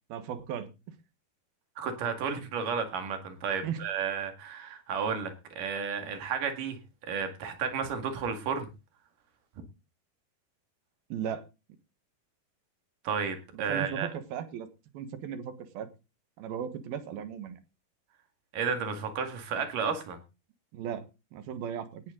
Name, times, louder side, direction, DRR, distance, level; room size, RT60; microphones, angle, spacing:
voice 1, 0.1-0.7 3.6-3.8 11.1-11.4 13.5-14.7 14.9-15.9 16.4-17.6 20.7-21.1 21.3-22.0, right 8 dB, 85° right, 11 dB, 3.3 m, -36 dB
voice 2, 1.8-6.8 7.0-8.7 13.1-14.1 18.5-20.2, right 6 dB, 65° right, 6 dB, 3.7 m, -32 dB
17.5 x 9.7 x 3.9 m, 0.29 s
omnidirectional pair, 4.2 m